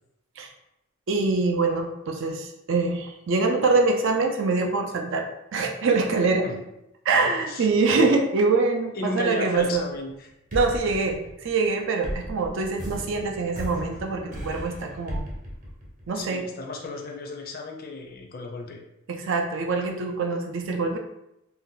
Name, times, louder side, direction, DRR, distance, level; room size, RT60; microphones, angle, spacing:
voice 1, 1.1-5.3 5.5-6.4 7.1-9.8 10.5-15.3 16.1-16.4 19.1-21.0, right 3 dB, 65° right, 3 dB, 0.5 m, -24 dB
voice 2, 8.9-10.3 16.1-18.8, left 2 dB, 45° left, 2 dB, 0.5 m, -34 dB
sound 1, 9.5-10.1 10.5-16.4, equal, 40° right, 0.9 m, -36 dB
2.6 x 2.1 x 3.8 m, 0.87 s
head